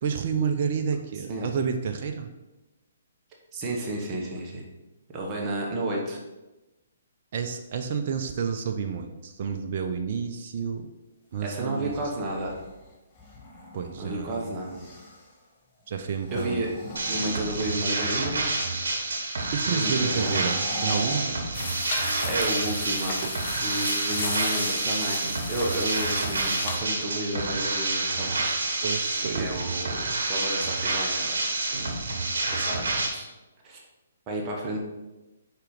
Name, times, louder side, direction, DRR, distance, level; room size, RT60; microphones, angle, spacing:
voice 1, 0.0-2.3 7.3-10.9 11.3-12.1 13.7-14.4 15.9-16.7 19.5-21.3 23.2-23.3 28.8-29.5, right 6 dB, 50° right, 5 dB, 0.6 m, -30 dB
voice 2, 3.5-4.6 5.1-6.2 11.4-12.6 14.0-14.9 16.3-16.7 17.1-18.4 19.7-20.4 22.2-23.2 23.6-25.2 25.5-28.6 29.4-31.4 32.5-33.3 33.6-33.8 34.3-34.8, right 1 dB, 25° right, -2 dB, 1.3 m, -31 dB
sound 1, 11.6-15.4 16.1-18.1 19.7-22.0, left 1 dB, 20° left, 1.5 m, -41 dB
sound 2, 17.0-33.1, right 3 dB, 65° right, 1.4 m, -28 dB
sound 3, 21.5-26.8, left 4 dB, 45° left, 1.2 m, -35 dB
5.0 x 4.5 x 4.9 m, 1.0 s
figure-of-eight pair, 135°, 0 cm